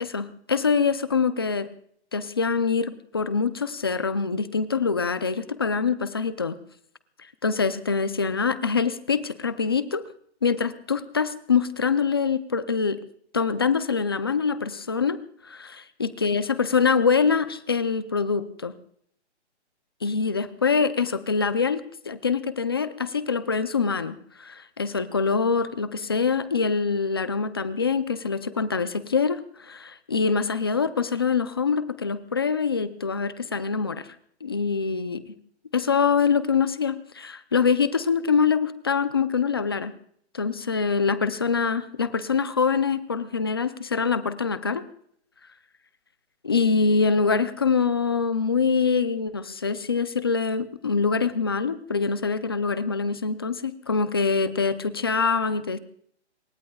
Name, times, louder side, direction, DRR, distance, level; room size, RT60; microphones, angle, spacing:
voice 1, 0.0-1.7 2.1-6.6 7.4-10.0 10.4-13.0 13.3-18.7 20.0-34.1 34.4-35.2 35.7-39.9 40.3-44.8 46.4-55.8, left 5 dB, 20° left, 13 dB, 0.5 m, -24 dB
27.0 x 22.5 x 2.3 m, 0.65 s
hypercardioid pair, 170°, 35 cm